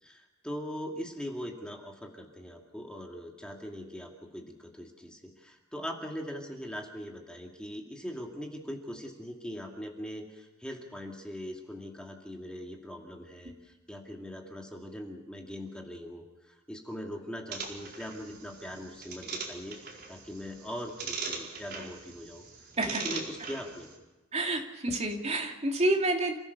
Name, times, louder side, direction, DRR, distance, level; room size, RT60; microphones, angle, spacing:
voice 1, 0.0-19.8 20.1-22.4 22.9-23.9, equal, 5° left, 1 dB, 2.3 m, -41 dB
sound 1, 17.5-24.0, right 4 dB, 50° right, 4.7 m, -41 dB
voice 2, 22.8-23.1 24.3-26.4, right 2 dB, 30° right, 2 dB, 2.8 m, -29 dB
29.0 x 16.0 x 6.9 m, 1.1 s
head